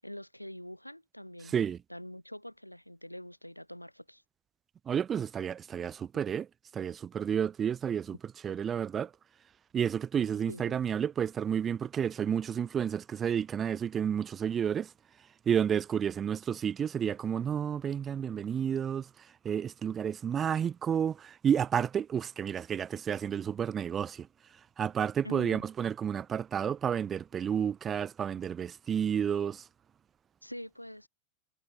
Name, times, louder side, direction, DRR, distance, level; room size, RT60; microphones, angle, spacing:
voice 1, 0.0-1.5 1.9-4.2 10.5-10.8 25.2-25.6 30.4-31.1, equal, 90° left, 1.3 m, -44 dB
voice 2, 4.9-6.5 6.7-8.2 8.4-9.1 9.7-14.9 15.5-19.1 19.4-24.3 24.8-29.6, right 8 dB, 25° right, 0.4 m, -31 dB
figure-of-eight pair, 90°, 0 cm